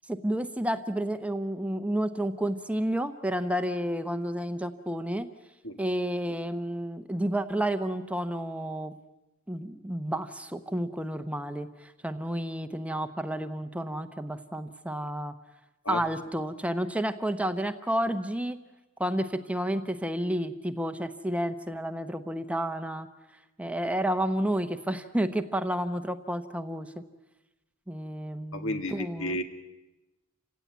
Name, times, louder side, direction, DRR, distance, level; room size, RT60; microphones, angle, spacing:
voice 1, 0.1-5.3 5.8-8.9 9.5-15.3 15.9-18.6 19.0-23.1 23.6-26.9 27.9-29.4, right 1 dB, 5° right, 9 dB, 0.8 m, -31 dB
voice 2, 28.5-29.4, left 1 dB, 65° left, 7 dB, 2.0 m, -32 dB
28.5 x 16.5 x 9.2 m, 1.0 s
head